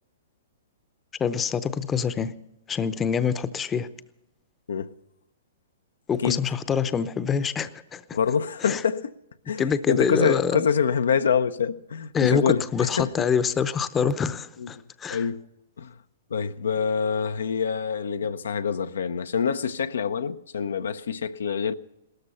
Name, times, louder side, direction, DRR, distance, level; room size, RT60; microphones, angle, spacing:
voice 1, 1.2-2.3 2.7-3.9 6.1-8.0 8.6-8.8 9.6-10.7 12.1-15.3, left 6 dB, 20° left, 0.8 m, -25 dB
voice 2, 8.1-9.1 9.5-12.7 13.0-13.1 14.6-14.8 15.1-15.5 15.8-15.9 16.3-21.7, left 6 dB, 75° left, 0.7 m, -26 dB
18.5 x 13.5 x 5.6 m
hypercardioid pair, 120°, 0 cm